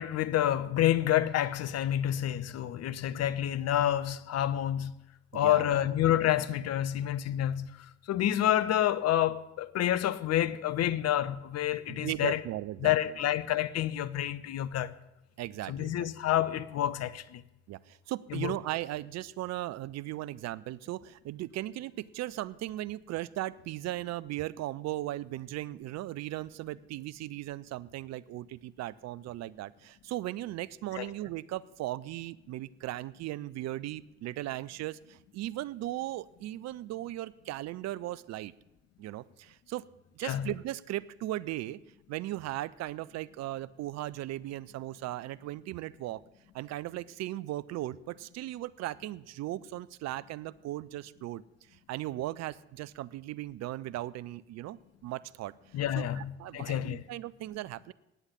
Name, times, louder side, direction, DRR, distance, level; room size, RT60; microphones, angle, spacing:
voice 1, 0.0-5.0 5.3-7.7 8.1-12.4 12.8-14.9 15.7-17.4 18.3-18.5 30.9-31.1 40.2-40.5 55.7-57.0, left 12 dB, 50° left, 0.7 m, -28 dB
voice 2, 5.3-5.9 11.9-13.2 15.4-16.1 17.7-38.5 39.0-39.8 40.2-41.8 42.1-46.2 46.5-51.4 51.7-55.5 56.0-57.9, right 15 dB, 50° right, 0.5 m, -37 dB
9.6 x 8.0 x 8.6 m
hypercardioid pair, 50°, 33 cm